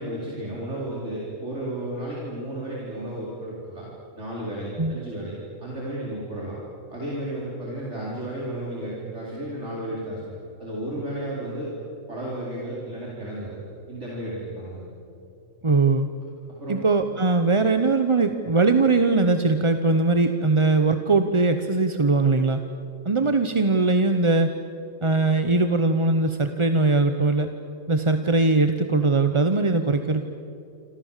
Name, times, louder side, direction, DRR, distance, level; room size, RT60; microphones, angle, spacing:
voice 1, 0.0-3.9 4.1-5.3 5.6-6.6 6.9-10.3 10.6-11.7 12.1-13.6 13.9-14.8 16.6-16.8, right 1 dB, 55° right, -5 dB, 4.8 m, -33 dB
voice 2, 15.6-16.1 16.7-22.6 23.0-24.5 25.0-27.5 27.9-30.3, right 3 dB, 25° right, 8 dB, 0.8 m, -21 dB
27.5 x 27.0 x 7.4 m, 2.8 s
omnidirectional pair, 1.5 m